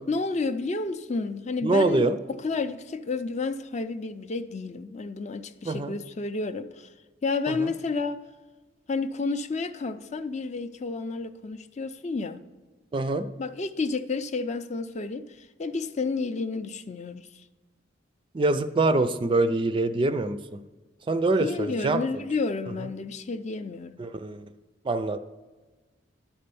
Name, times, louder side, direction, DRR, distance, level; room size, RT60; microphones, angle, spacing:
voice 1, 0.1-6.9 7.2-8.2 8.9-12.4 13.4-15.3 15.6-17.3 21.4-24.0, left 3 dB, 40° left, 0.5 m, -30 dB
voice 2, 1.6-2.2 5.6-6.0 7.5-7.7 12.9-13.3 18.3-20.6 21.1-22.0 24.0-24.5 24.8-25.2, right 2 dB, 25° right, 0.4 m, -25 dB
11.5 x 4.3 x 6.8 m
head